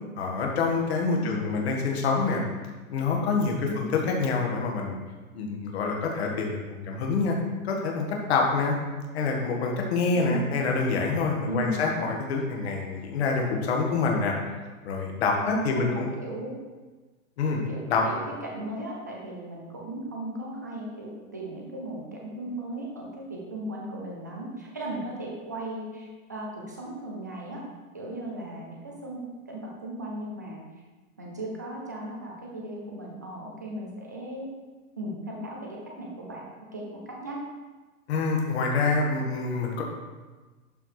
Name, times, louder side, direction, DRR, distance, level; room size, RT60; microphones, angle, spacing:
voice 1, 0.2-2.4 2.9-5.0 5.3-7.4 7.6-8.8 9.1-14.3 14.8-16.1 17.4-17.6 17.9-18.0 38.1-39.8, left 4 dB, 45° left, 0 dB, 1.8 m, -26 dB
voice 2, 1.2-1.6 3.6-3.9 10.1-10.5 11.4-11.8 15.4-16.6 17.7-27.6 27.9-30.6 31.2-34.5 35.0-36.4 36.7-37.4, right 1 dB, 15° right, -2 dB, 0.4 m, -37 dB
11.5 x 4.6 x 4.9 m, 1.3 s
hypercardioid pair, 170°, 43 cm